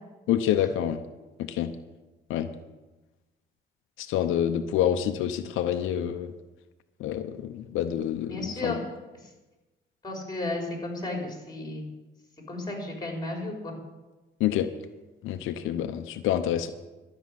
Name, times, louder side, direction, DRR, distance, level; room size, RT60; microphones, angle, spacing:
voice 1, 0.3-1.0 1.5-1.7 2.3-2.5 4.0-6.3 7.0-8.8 14.4-14.7 15.2-16.7, left 10 dB, 90° left, 8 dB, 0.7 m, -27 dB
voice 2, 8.3-8.8 9.2-9.3 10.0-11.8 12.5-13.7, left 2 dB, 20° left, 2 dB, 4.2 m, -33 dB
12.5 x 6.4 x 9.7 m, 1.1 s
cardioid pair, 90°, 20 cm